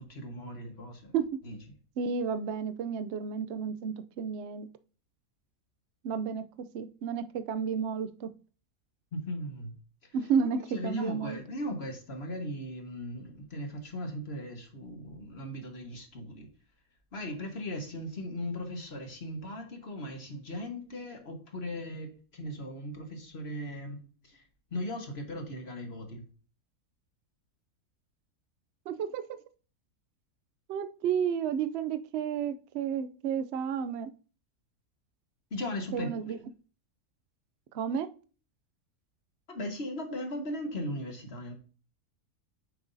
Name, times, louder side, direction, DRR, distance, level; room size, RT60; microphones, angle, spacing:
voice 1, 0.0-1.1 1.4-1.6 9.1-9.7 10.7-16.5 17.1-24.0 24.2-24.4 24.7-26.2 35.5-36.4 39.5-41.5, left 1 dB, 40° left, 4 dB, 1.6 m, -38 dB
voice 2, 2.0-4.7 6.0-6.5 6.7-8.3 10.1-11.4 28.9-29.4 30.7-34.1 35.9-36.4 37.7-38.1, right 7 dB, 60° right, 12 dB, 0.7 m, -31 dB
7.9 x 5.9 x 2.7 m, 0.38 s
omnidirectional pair, 1.7 m